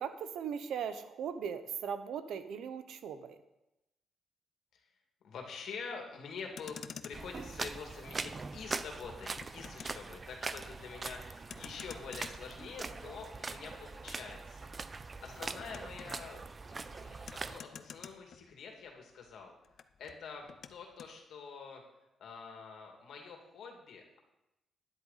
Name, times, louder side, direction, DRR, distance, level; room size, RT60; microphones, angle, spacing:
voice 1, 0.0-3.4, right 7 dB, 80° right, 11 dB, 0.8 m, -39 dB
voice 2, 5.2-19.6 20.0-21.8 22.2-24.2, left 5 dB, 70° left, 2 dB, 2.3 m, -47 dB
Motor vehicle (road), 6.4-19.0 19.3-21.2, left 7 dB, 55° left, 0.5 m, -52 dB
sound 1, 7.1-17.6, right 4 dB, 30° right, 0.4 m, -42 dB
12.0 x 10.5 x 4.1 m, 0.93 s
cardioid pair, 130°, 0 cm